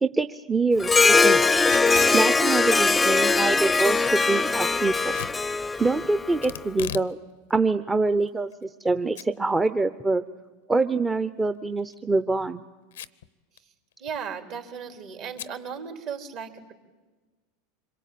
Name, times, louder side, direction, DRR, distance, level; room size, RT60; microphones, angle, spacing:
voice 1, 0.0-1.7 2.1-5.1 5.8-7.2 7.5-10.2 10.7-12.6, right 3 dB, 15° right, 10 dB, 0.8 m, -25 dB
Harp, 0.8-6.5, left 4 dB, 15° left, 0.7 m, -21 dB
Packing tape duct tape / Tearing, 1.6-2.2 5.1-5.4 6.4-7.1 7.5-7.6 8.3-8.9 9.2-9.3 9.7-9.8 11.7-12.0 12.9-13.3 13.6-13.7 13.9-14.3 15.4-15.6, left 11 dB, 80° left, 0.7 m, -37 dB
voice 2, 14.0-16.7, right 7 dB, 55° right, 4 dB, 3.6 m, -36 dB
25.5 x 22.5 x 8.6 m, 1.3 s
hypercardioid pair, 90°, 0 cm